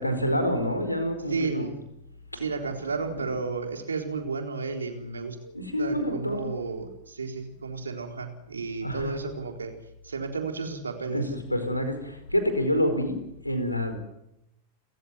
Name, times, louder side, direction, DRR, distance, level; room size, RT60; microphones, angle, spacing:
voice 1, 0.0-1.7 2.3-2.4 3.1-3.3 5.4-6.4 8.8-9.2 11.1-13.2 13.4-14.0, equal, 85° left, 8 dB, 4.8 m, -27 dB
voice 2, 1.3-1.7 2.4-5.4 5.8-9.7 10.0-11.2, right 4 dB, 75° right, 5 dB, 4.1 m, -32 dB
30.0 x 15.5 x 9.7 m, 0.85 s
figure-of-eight pair, 90°, 0 cm